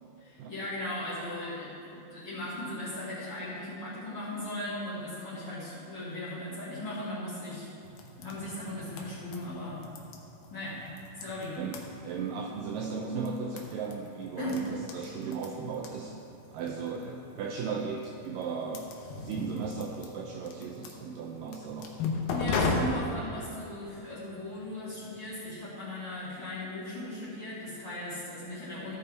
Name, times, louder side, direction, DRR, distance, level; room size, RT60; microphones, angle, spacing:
voice 1, 0.2-7.7 8.2-9.8 10.5-10.8 11.1-11.6 14.4-14.7 22.3-29.0, left 1 dB, 35° left, -10 dB, 2.2 m, -37 dB
sound 1, 7.8-25.4, left 3 dB, 75° left, 2.7 m, -38 dB
voice 2, 11.6-16.2 16.5-18.9 19.2-21.9, right 5 dB, 80° right, 1 dB, 2.0 m, -36 dB
14.5 x 5.5 x 4.4 m, 2.8 s
omnidirectional pair, 4.4 m